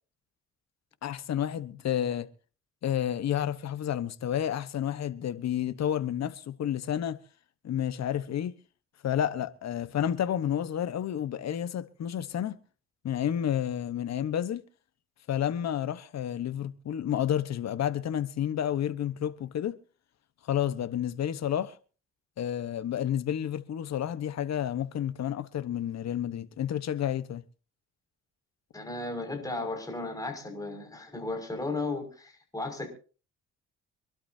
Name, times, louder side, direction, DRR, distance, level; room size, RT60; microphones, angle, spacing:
voice 1, 1.0-2.3 2.8-7.2 7.6-8.5 9.0-12.6 13.0-14.6 15.3-19.8 20.5-21.8 22.4-27.4, left 10 dB, 60° left, 1.2 m, -30 dB
voice 2, 28.7-32.9, left 2 dB, 10° left, 6.0 m, -35 dB
25.5 x 12.5 x 2.8 m
cardioid pair, 90°, 30 cm